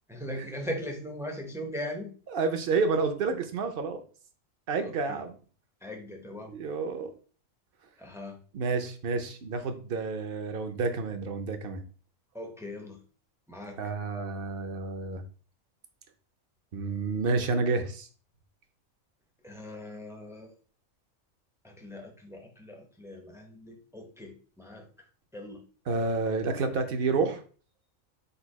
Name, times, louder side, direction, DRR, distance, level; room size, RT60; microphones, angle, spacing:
voice 1, 0.1-2.1 4.8-5.2 5.8-6.5 8.0-8.4 12.3-13.0 13.5-13.8 19.4-20.5 21.6-24.8 25.3-25.6, left 1 dB, 5° right, 2 dB, 0.4 m, -39 dB
voice 2, 2.3-4.0 4.7-5.3 6.5-7.1 8.5-11.8 13.8-15.2 16.7-18.1 25.9-27.4, right 4 dB, 55° right, 7 dB, 0.7 m, -29 dB
3.9 x 2.3 x 4.6 m, 0.40 s
omnidirectional pair, 1.4 m